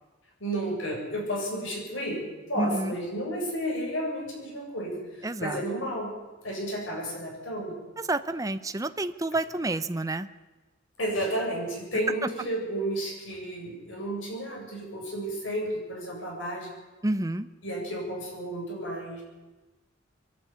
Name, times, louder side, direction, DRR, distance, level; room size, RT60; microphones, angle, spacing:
voice 1, 0.4-2.2 2.5-6.1 6.4-7.8 11.0-16.8 17.6-19.2, right 1 dB, 85° left, -1 dB, 7.8 m, -32 dB
voice 2, 2.6-2.9 5.2-5.6 8.0-10.3 12.2-12.3 17.0-17.5, right 2 dB, 20° right, 11 dB, 0.7 m, -29 dB
23.0 x 12.0 x 9.8 m, 1.2 s
head